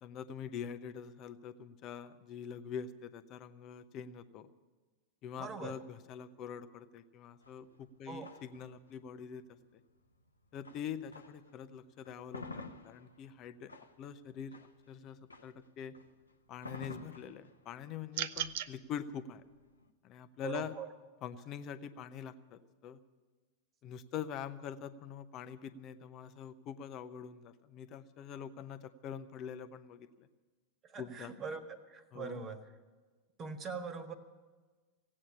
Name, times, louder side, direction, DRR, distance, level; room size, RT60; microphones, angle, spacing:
voice 1, 0.0-4.5 5.2-9.4 10.5-13.7 14.0-14.6 14.9-16.0 16.5-19.4 20.0-20.7 21.2-23.0 23.8-30.3 31.0-31.3 32.1-32.4, left 8 dB, 35° left, 12 dB, 0.8 m, -44 dB
voice 2, 5.4-5.8 8.0-8.3 20.4-20.9 30.8-32.6 33.4-34.1, right 5 dB, 30° right, 9 dB, 1.5 m, -42 dB
sound 1, 7.4-11.6 11.9-19.9, left 3 dB, 80° left, 0.9 m, -51 dB
sound 2, 18.1-18.7, right 12 dB, 55° right, 0.5 m, -36 dB
16.5 x 8.7 x 9.7 m, 1.3 s
figure-of-eight pair, 90°, 0 cm